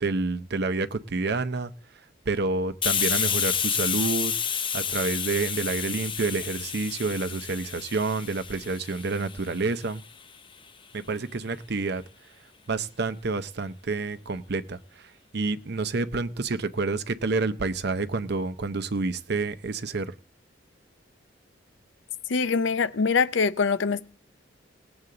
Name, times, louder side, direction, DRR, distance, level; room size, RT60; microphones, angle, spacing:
voice 1, 0.0-1.7 2.3-4.3 4.7-10.0 10.9-12.0 12.7-14.8 15.3-20.1, right 3 dB, 60° right, 0.7 m, -28 dB
Hiss, 2.8-10.2, left 8 dB, 30° left, 0.6 m, -30 dB
voice 2, 22.3-24.1, left 5 dB, 85° left, 0.6 m, -24 dB
19.0 x 8.0 x 3.8 m
head